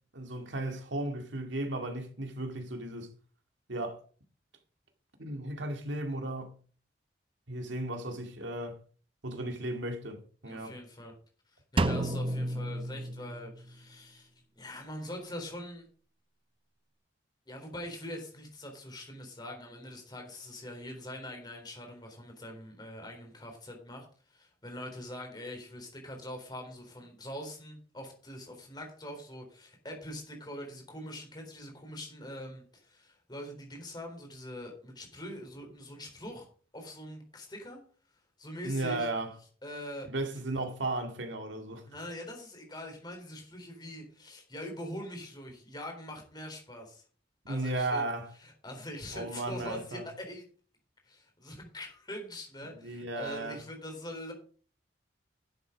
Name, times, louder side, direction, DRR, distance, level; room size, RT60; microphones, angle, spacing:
voice 1, 0.1-3.1 3.7-4.0 5.2-6.6 7.5-8.8 9.2-10.8 38.6-39.4 40.1-41.8 47.4-48.3 49.1-50.0 52.7-53.6, right 2 dB, 85° right, 2.2 m, -35 dB
voice 2, 10.4-11.1 11.5-14.3 14.6-15.8 17.5-36.5 36.7-37.8 38.4-39.1 39.6-40.1 40.6-40.7 41.9-47.0 47.5-48.0 48.4-50.4 51.1-54.3, left 1 dB, 25° left, 3.8 m, -43 dB
Drum, 11.8-13.7, right 1 dB, 30° right, 0.6 m, -31 dB
10.5 x 8.0 x 5.1 m
head